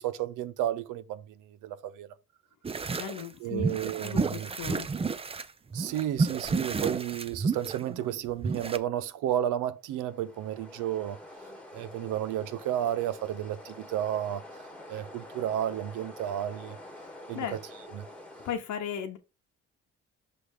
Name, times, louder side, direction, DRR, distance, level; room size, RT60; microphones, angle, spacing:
voice 1, 0.0-2.1 3.4-4.5 5.7-11.2 11.7-14.4 14.9-16.8 17.3-17.6 17.9-18.1, right 11 dB, 90° right, 0.7 m, -32 dB
sound 1, 2.6-3.3 3.6-5.4 5.7-8.8, right 4 dB, 20° right, 0.5 m, -31 dB
voice 2, 3.0-3.7 4.0-4.9 17.3-17.6 18.4-19.2, left 8 dB, 75° left, 1.0 m, -36 dB
sound 2, 9.8-18.5, left 1 dB, 5° left, 1.4 m, -47 dB
6.0 x 3.3 x 4.8 m
cardioid pair, 90°, 30 cm